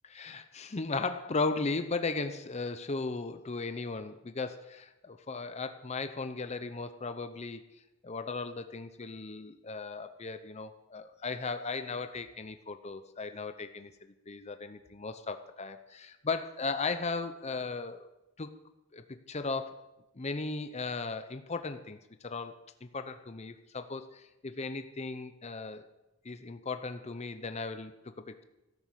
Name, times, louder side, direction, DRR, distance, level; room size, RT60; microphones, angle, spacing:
voice 1, 0.1-7.6 8.0-13.9 14.3-18.1 18.4-18.6 18.9-19.9 20.2-22.0 22.2-25.9 26.2-28.4, left 3 dB, 30° left, 9 dB, 0.7 m, -36 dB
13.5 x 11.0 x 7.3 m, 0.97 s
head